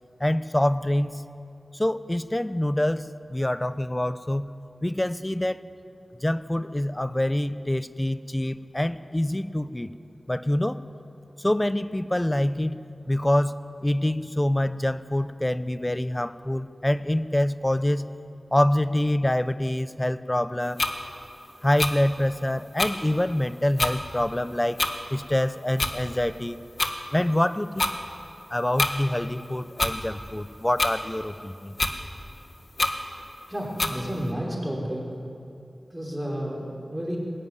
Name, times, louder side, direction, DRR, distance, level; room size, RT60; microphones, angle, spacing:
voice 1, 0.2-1.2 1.7-4.5 4.8-5.6 6.2-9.9 10.3-10.8 11.4-12.8 13.1-18.1 18.5-20.8 21.6-24.8 25.1-26.6 27.1-27.8 28.5-31.7, left 1 dB, 20° left, 13 dB, 0.8 m, -25 dB
sound 1, 20.8-20.9 21.8-21.9 22.8-22.9 23.8-23.9 24.8-24.9 25.8-26.0 26.8-26.9 27.8-27.9 28.8-28.9 29.8-30.0 30.8-30.9 31.8-32.0 32.8-32.9 33.8-33.9, left 2 dB, 50° left, 1.7 m, -24 dB
voice 2, 33.5-35.0 35.9-37.2, equal, 5° right, -2 dB, 5.8 m, -31 dB
21.0 x 15.5 x 9.8 m, 2.7 s
wide cardioid pair, 60°, 0 cm